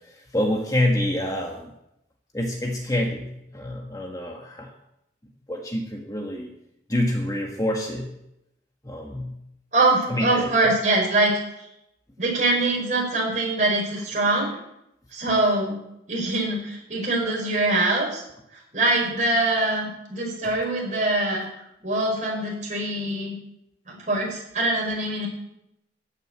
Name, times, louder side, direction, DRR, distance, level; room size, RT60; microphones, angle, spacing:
voice 1, 0.3-1.7 2.3-4.7 5.5-6.5 6.9-8.1 8.8-9.3 10.1-10.7, left 1 dB, 20° left, 1 dB, 1.4 m, -27 dB
voice 2, 9.7-11.3 12.2-14.5 15.1-15.8 16.1-18.2 18.7-21.5 21.8-23.4 23.9-25.3, right 2 dB, 40° right, -2 dB, 5.5 m, -23 dB
13.5 x 6.7 x 9.5 m, 0.83 s
head